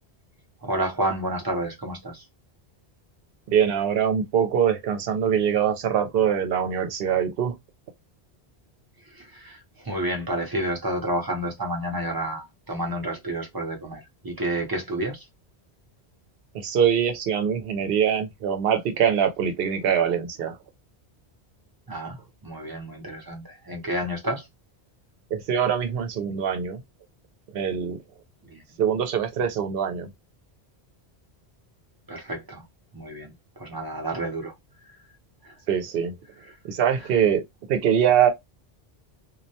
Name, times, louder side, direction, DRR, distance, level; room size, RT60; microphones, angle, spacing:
voice 1, 0.6-2.2 9.2-9.6 9.8-15.2 21.9-22.2 22.4-24.5 28.5-28.6 32.1-32.6 32.9-34.5 35.4-35.5, right 1 dB, 25° right, 0.5 m, -30 dB
voice 2, 3.5-7.5 16.5-20.6 25.3-26.8 27.5-28.0 28.8-30.1 35.7-36.1 36.7-37.4 37.7-38.3, right 8 dB, 70° right, 0.8 m, -23 dB
2.3 x 2.1 x 2.6 m
omnidirectional pair, 1.1 m